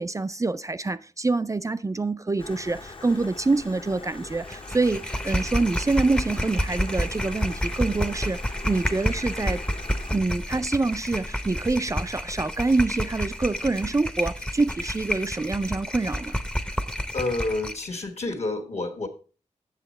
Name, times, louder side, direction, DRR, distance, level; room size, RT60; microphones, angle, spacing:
voice 1, 0.0-9.6 10.1-16.4, right 3 dB, 25° right, 0.4 m, -26 dB
Stream, 2.4-10.2, left 3 dB, 45° left, 0.9 m, -42 dB
sound 1, 4.5-17.9, equal, 5° left, 0.7 m, -30 dB
voice 2, 17.1-19.1, left 2 dB, 60° left, 1.4 m, -29 dB
8.0 x 7.0 x 4.1 m
wide cardioid pair, 70°, 13 cm